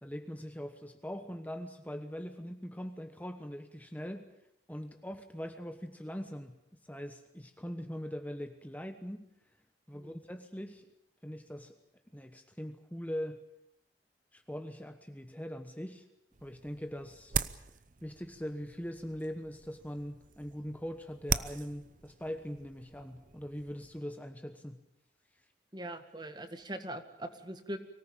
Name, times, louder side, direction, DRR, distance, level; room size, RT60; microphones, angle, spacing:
voice 1, 0.0-4.3 4.7-6.6 6.8-9.3 9.9-10.9 11.2-11.8 12.1-13.4 14.3-16.1 16.4-17.4 18.0-24.8, equal, 10° left, 7 dB, 1.1 m, -41 dB
sound 1, 16.3-24.0, right 6 dB, 50° right, 0.8 m, -40 dB
voice 2, 25.7-27.8, right 1 dB, 25° right, 8 dB, 1.8 m, -41 dB
24.5 x 18.0 x 8.8 m, 0.82 s
head